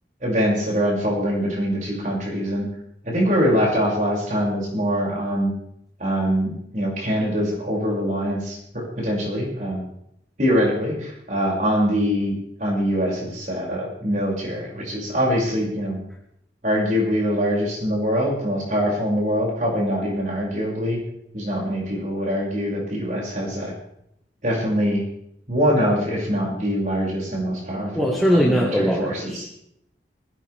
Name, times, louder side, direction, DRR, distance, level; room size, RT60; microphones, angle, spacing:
voice 1, 0.2-2.7 3.0-5.5 6.0-9.8 10.4-12.3 12.6-16.0 16.6-21.0 21.3-23.7 24.4-25.0 25.5-29.5, equal, 45° right, -3 dB, 6.5 m, -23 dB
voice 2, 27.9-29.6, equal, ahead, -1 dB, 1.7 m, -21 dB
21.0 x 16.5 x 3.5 m, 0.75 s
head